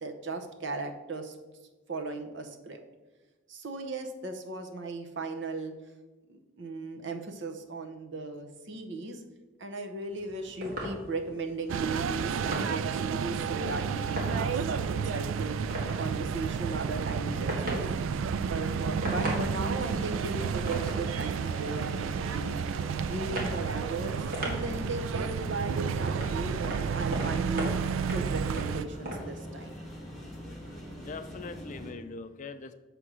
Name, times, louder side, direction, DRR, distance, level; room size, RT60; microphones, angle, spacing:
voice 1, 0.0-1.4 1.9-2.8 3.5-5.7 6.3-9.2 9.6-15.6 16.0-18.0 18.5-22.6 23.1-27.7 28.1-29.8, right 3 dB, 65° right, 5 dB, 0.8 m, -37 dB
sound 1, 10.1-29.2, right 1 dB, 50° right, 1.9 m, -40 dB
sound 2, 11.7-28.9, right 6 dB, 85° right, 0.3 m, -31 dB
sound 3, 19.1-31.9, equal, ahead, 1.4 m, -44 dB
voice 2, 31.0-32.7, left 4 dB, 40° left, 10 dB, 0.4 m, -41 dB
7.5 x 3.4 x 6.1 m, 1.2 s
head